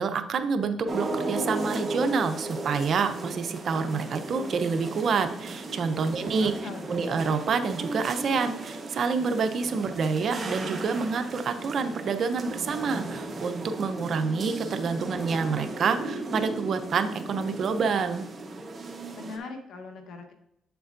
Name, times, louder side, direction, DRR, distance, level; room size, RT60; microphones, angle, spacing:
voice 1, 0.0-6.5 6.9-18.3, right 5 dB, 55° right, 8 dB, 0.7 m, -27 dB
sound 1, 0.9-19.4, right 2 dB, 35° right, 1.2 m, -36 dB
voice 2, 6.2-7.2 19.1-20.3, left 4 dB, 75° left, 5 dB, 1.1 m, -41 dB
8.5 x 6.9 x 2.6 m, 0.78 s
cardioid pair, 90°, 0 cm